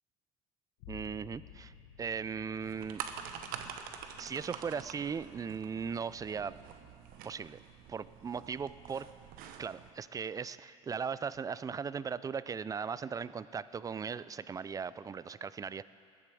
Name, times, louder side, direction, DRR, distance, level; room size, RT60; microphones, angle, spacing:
sound 1, 0.8-6.3 6.7-7.3, left 10 dB, 75° left, 1.0 m, -56 dB
voice 1, 0.9-1.7 2.0-3.0 4.2-6.6 7.2-7.6 7.9-9.0 9.6-15.8, right 6 dB, 20° right, 17 dB, 0.4 m, -38 dB
sound 2, 2.6-9.9, right 8 dB, 65° right, 1.1 m, -46 dB
20.0 x 11.0 x 4.9 m, 2.5 s
supercardioid pair, 85°, 16 cm